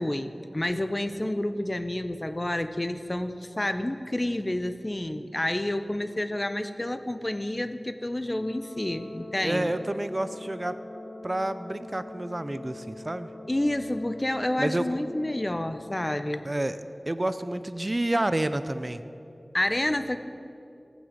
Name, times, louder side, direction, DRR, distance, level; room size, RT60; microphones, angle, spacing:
voice 1, 0.0-9.7 13.5-16.5 19.5-20.2, left 1 dB, 30° left, 10 dB, 0.7 m, -29 dB
Brass instrument, 8.2-16.2, left 2 dB, 70° left, 2.6 m, -44 dB
voice 2, 9.4-10.8 11.2-13.3 14.6-14.9 16.4-16.8 17.1-19.0, right 1 dB, 35° right, 12 dB, 0.5 m, -29 dB
18.0 x 6.2 x 8.1 m, 2.8 s
wide cardioid pair, 45°, 0 cm